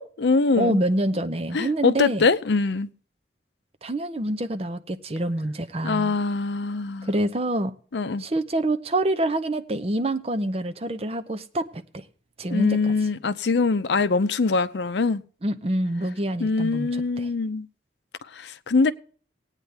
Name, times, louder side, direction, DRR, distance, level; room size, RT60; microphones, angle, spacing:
voice 1, 0.0-0.8 1.5-2.9 5.8-7.1 7.9-8.2 12.5-15.2 16.4-17.7 18.3-18.9, left 4 dB, 75° left, 0.6 m, -23 dB
voice 2, 0.6-2.3 3.8-6.1 7.0-7.7 8.2-12.0 12.4-12.9 15.4-17.3, right 1 dB, 35° right, 0.7 m, -26 dB
18.0 x 9.0 x 3.4 m
head